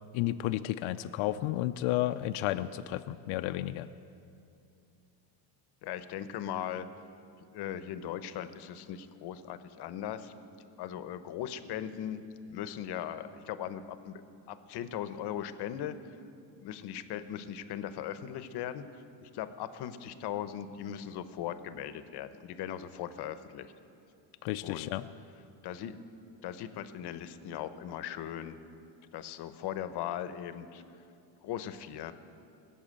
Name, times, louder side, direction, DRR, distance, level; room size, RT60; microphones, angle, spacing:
voice 1, 0.1-3.9 24.4-25.1, left 15 dB, 80° left, 11 dB, 0.5 m, -32 dB
voice 2, 5.8-6.9 7.5-10.3 10.8-12.2 12.5-14.2 14.5-16.0 16.6-18.8 19.2-23.7 24.6-24.9 25.6-26.0 26.4-28.6 29.1-30.8 31.4-32.1, left 10 dB, 55° left, 12 dB, 0.8 m, -39 dB
19.0 x 7.1 x 8.7 m, 2.6 s
cardioid pair, 150°, 46 cm